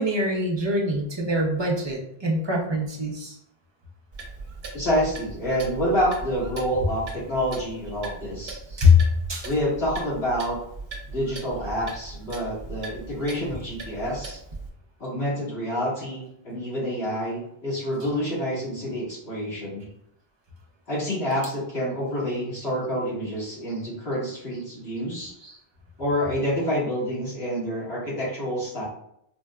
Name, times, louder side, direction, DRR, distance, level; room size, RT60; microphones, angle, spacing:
voice 1, 0.0-3.3 8.8-9.0 9.3-9.4 25.4-25.5, left 3 dB, 35° right, -1 dB, 0.5 m, -23 dB
Clock, 4.1-14.7, right 3 dB, 50° right, 0.9 m, -39 dB
voice 2, 4.7-8.6 9.4-10.6 11.1-14.4 15.0-19.9 20.9-25.3 26.0-28.8, equal, 85° left, -8 dB, 2.0 m, -28 dB
4.1 x 2.1 x 2.3 m, 0.72 s
omnidirectional pair, 1.0 m